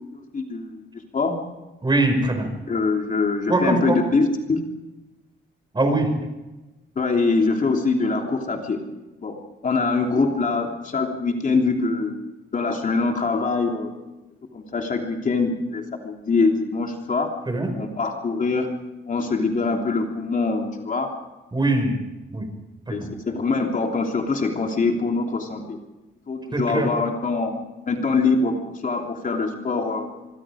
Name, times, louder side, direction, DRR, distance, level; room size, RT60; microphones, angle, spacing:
voice 1, 0.3-0.8 1.1-1.3 2.7-4.6 6.9-8.8 9.2-9.4 9.6-12.1 12.5-13.9 14.5-17.3 17.7-18.7 19.1-21.1 22.9-25.8 26.3-27.5 27.9-30.1, left 4 dB, 40° left, 2 dB, 3.1 m, -23 dB
voice 2, 1.8-2.5 3.5-4.0 5.7-6.1 17.5-17.7 21.5-22.0 22.3-22.5 22.9-23.1 26.5-26.9, right 2 dB, 20° right, 5 dB, 5.6 m, -22 dB
25.0 x 24.0 x 5.0 m, 1.1 s
cardioid pair, 100°, 21 cm